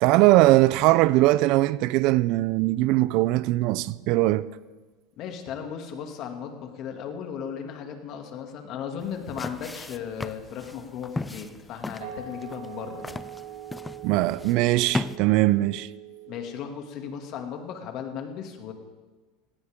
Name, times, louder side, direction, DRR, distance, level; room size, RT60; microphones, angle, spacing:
voice 1, 0.0-4.5 14.0-15.9, right 17 dB, 55° right, 0.4 m, -20 dB
voice 2, 5.2-13.2 16.3-18.7, left 7 dB, 50° left, 2.4 m, -36 dB
sound 1, 9.0-15.2, left 2 dB, 10° left, 0.5 m, -36 dB
sound 2, 12.0-17.4, right 9 dB, 80° right, 2.0 m, -43 dB
17.5 x 17.5 x 3.7 m
supercardioid pair, 125°, 0 cm